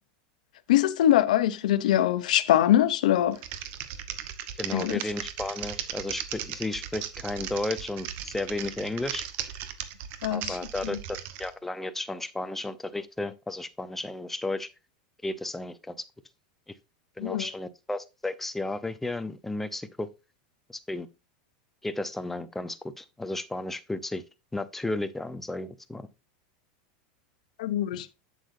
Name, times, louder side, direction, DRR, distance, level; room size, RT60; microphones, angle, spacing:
voice 1, 0.7-3.4 4.7-5.0 10.2-10.6 10.8-11.0 17.2-17.5 27.6-28.1, left 12 dB, 85° left, 0.7 m, -23 dB
Typing, 3.3-11.5, right 10 dB, 50° right, 1.0 m, -37 dB
voice 2, 4.6-9.2 10.3-14.7 15.2-16.0 17.2-20.1 20.7-21.1 21.8-24.2 24.5-26.1, left 2 dB, 5° left, 0.7 m, -33 dB
8.4 x 7.8 x 2.6 m
supercardioid pair, 135°, 4 cm